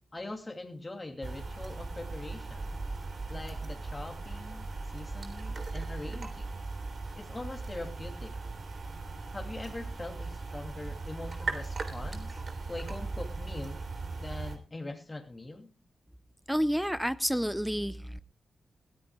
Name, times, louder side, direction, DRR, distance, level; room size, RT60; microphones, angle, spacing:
voice 1, 0.1-2.7 3.3-6.6 7.1-8.4 9.3-12.4 12.7-13.8 14.2-15.7, left 2 dB, 30° left, 2 dB, 2.9 m, -42 dB
sound 1, 1.2-14.6, right 3 dB, 55° right, 3.3 m, -38 dB
voice 2, 16.5-18.2, equal, ahead, 13 dB, 0.8 m, -29 dB
20.5 x 14.0 x 2.4 m, 0.33 s
cardioid pair, 60°, 0 cm